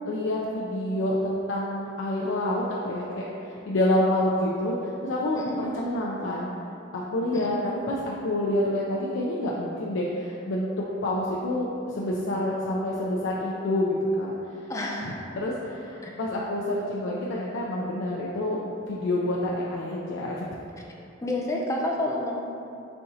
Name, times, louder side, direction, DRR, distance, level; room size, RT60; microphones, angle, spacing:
voice 1, 0.1-6.5 6.9-14.3 15.0-18.6 18.9-20.5, left 1 dB, 90° left, -5 dB, 0.4 m, -28 dB
voice 2, 14.7-15.3 16.0-16.1 21.2-22.3, left 1 dB, 15° left, -2 dB, 0.4 m, -29 dB
4.4 x 3.6 x 2.7 m, 2.7 s
head